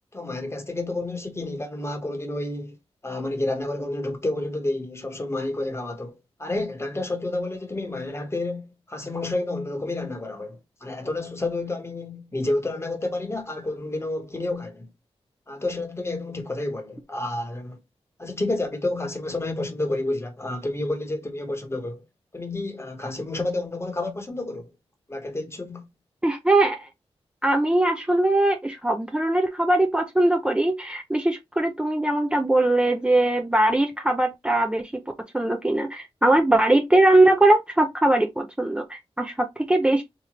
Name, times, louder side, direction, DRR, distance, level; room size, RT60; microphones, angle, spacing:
voice 1, 0.1-2.8 3.0-14.9 15.5-17.8 18.2-22.0 22.3-24.7 25.1-25.8, left 2 dB, 25° left, 1.1 m, -30 dB
voice 2, 26.2-26.9 27.4-35.0 35.3-40.0, right 1 dB, 10° right, 0.5 m, -21 dB
3.6 x 2.9 x 2.9 m
cardioid pair, 65°, 11 cm